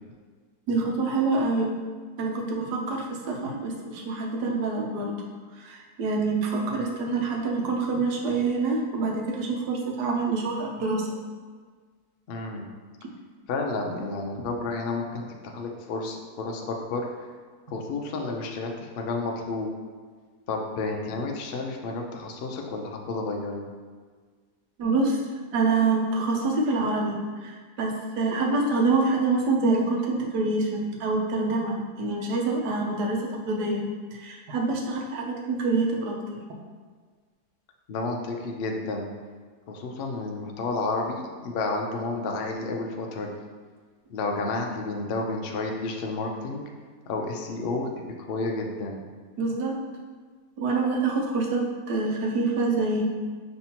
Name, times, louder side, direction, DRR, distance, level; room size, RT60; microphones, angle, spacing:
voice 1, 0.7-1.8 2.2-5.1 5.5-11.1 24.8-25.2 25.5-33.8 34.2-36.4 49.4-49.8 50.6-53.0, right 3 dB, 90° right, 0 dB, 1.3 m, -26 dB
voice 2, 12.3-12.7 13.5-17.1 17.7-19.7 20.5-23.7 37.9-39.1 39.7-43.4 44.1-46.6 47.1-49.0, left 3 dB, 85° left, 2 dB, 0.5 m, -31 dB
5.5 x 3.3 x 2.9 m, 1.5 s
omnidirectional pair, 1.7 m